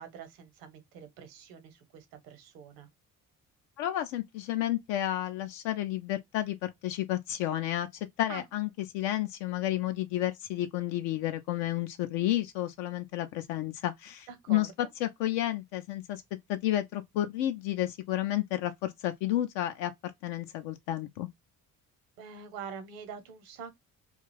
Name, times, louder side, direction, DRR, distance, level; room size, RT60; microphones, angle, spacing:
voice 1, 0.0-2.9 8.3-8.4 14.3-14.7 22.2-23.7, right 7 dB, 70° right, 0.9 m, -45 dB
voice 2, 3.8-16.2 16.5-21.3, left 14 dB, 65° left, 0.5 m, -31 dB
2.4 x 2.3 x 3.1 m
hypercardioid pair, 45°, 47 cm